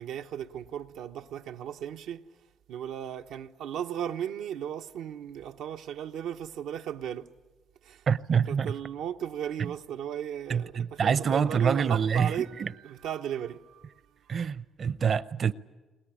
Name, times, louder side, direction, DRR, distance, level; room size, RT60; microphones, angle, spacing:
voice 1, 0.0-2.3 2.7-7.3 7.8-14.0 14.3-14.4, right 9 dB, 90° right, 0.7 m, -36 dB
voice 2, 8.1-8.7 10.5-12.3 12.6-12.7 14.3-15.5, right 7 dB, 50° right, 0.7 m, -26 dB
21.0 x 20.5 x 9.9 m
cardioid pair, 90°, 0 cm